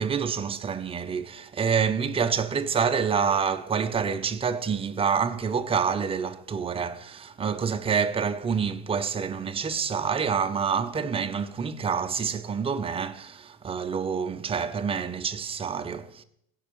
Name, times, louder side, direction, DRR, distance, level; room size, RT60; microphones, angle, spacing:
voice 1, 0.0-16.2, right 6 dB, 15° right, 0.5 m, -27 dB
16.5 x 5.5 x 6.9 m
cardioid pair, 155°, 36 cm